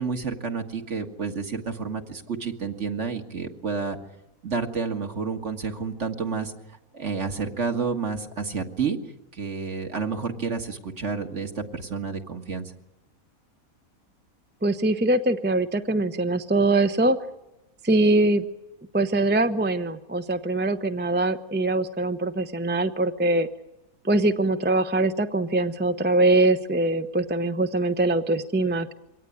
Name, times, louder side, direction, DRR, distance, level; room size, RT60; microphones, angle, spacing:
voice 1, 0.0-4.0 4.4-6.5 6.9-9.0 9.3-12.7, right 5 dB, 55° right, 5 dB, 2.1 m, -30 dB
voice 2, 14.6-17.2 17.8-18.5 18.9-23.5 24.0-28.9, right 2 dB, 10° right, 8 dB, 0.6 m, -23 dB
24.0 x 18.0 x 9.7 m, 1.0 s
omnidirectional pair, 1.5 m